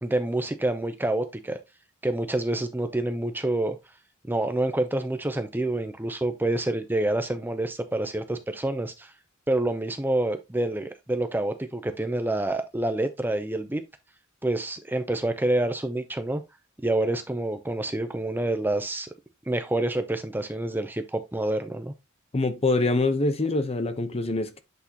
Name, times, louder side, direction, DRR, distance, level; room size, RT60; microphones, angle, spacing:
voice 1, 0.0-1.6 2.0-3.8 4.3-9.1 9.5-13.8 14.4-16.4 16.8-19.1 19.5-21.9, right 1 dB, 10° right, 0.5 m, -27 dB
voice 2, 22.3-24.6, left 2 dB, 30° left, 0.8 m, -25 dB
8.2 x 4.2 x 2.9 m
head